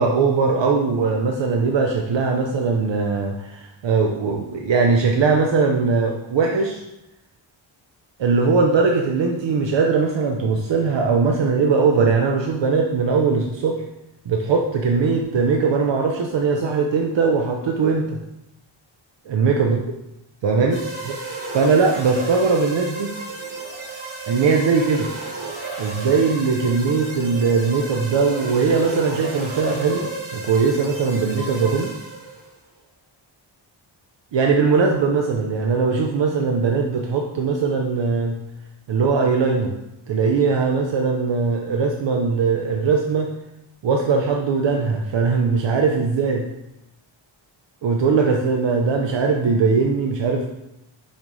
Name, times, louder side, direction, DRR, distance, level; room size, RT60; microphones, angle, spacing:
voice 1, 0.0-6.8 8.2-13.8 14.3-18.1 19.3-19.8 20.4-21.2 21.5-23.1 24.3-25.1 25.8-31.9 34.3-38.4 38.9-39.7 40.1-43.3 43.8-46.4 47.8-50.5, right 4 dB, 65° right, 1 dB, 0.7 m, -20 dB
sound 1, 20.7-32.5, right 3 dB, 80° right, 1.6 m, -32 dB
6.5 x 5.1 x 3.1 m, 0.87 s
wide cardioid pair, 170°, 48 cm